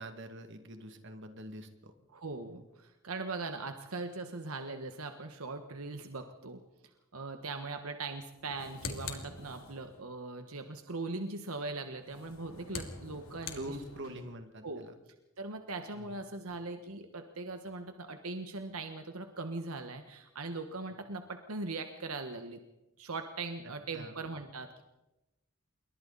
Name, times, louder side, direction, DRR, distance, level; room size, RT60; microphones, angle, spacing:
voice 1, 0.0-1.9 13.6-14.9 15.9-16.2 23.9-24.2, right 1 dB, 55° right, 7 dB, 2.2 m, -44 dB
voice 2, 2.1-6.6 7.1-13.8 14.6-14.9 15.4-22.6 23.0-24.8, right 3 dB, 80° right, 6 dB, 1.4 m, -40 dB
sound 1, 8.4-10.0 12.0-14.3, left 4 dB, 70° left, 2.7 m, -44 dB
27.5 x 23.0 x 4.1 m, 0.98 s
head